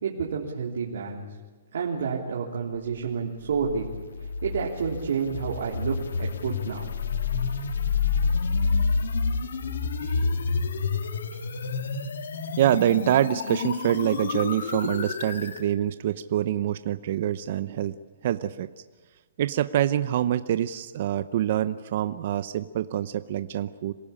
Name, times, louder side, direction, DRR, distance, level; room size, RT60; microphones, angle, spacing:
voice 1, 0.0-1.3 1.7-3.9 4.4-6.9, right 6 dB, 70° right, -3 dB, 3.4 m, -29 dB
sound 1, 3.5-15.6, left 5 dB, 90° left, 2.2 m, -29 dB
voice 2, 9.8-10.6 12.6-18.0 18.2-18.7 19.4-23.9, right 11 dB, 45° right, 11 dB, 0.7 m, -26 dB
26.5 x 17.5 x 8.6 m, 1.3 s
hypercardioid pair, 170°, 0 cm